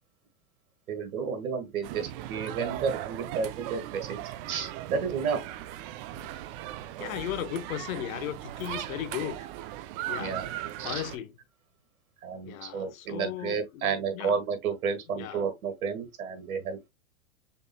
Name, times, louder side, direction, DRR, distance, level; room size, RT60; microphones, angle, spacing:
voice 1, 0.9-4.2 4.5-5.4 6.1-6.3 8.8-8.9 10.2-10.5 10.8-11.0 12.2-16.9, right 6 dB, 85° right, 1.8 m, -31 dB
sound 1, 1.8-11.2, right 13 dB, 45° right, 0.6 m, -38 dB
voice 2, 7.0-9.4 10.1-10.4 10.8-11.3 12.4-14.4 15.1-15.4, left 11 dB, 75° left, 1.0 m, -36 dB
5.3 x 4.1 x 2.2 m
hypercardioid pair, 120°, 42 cm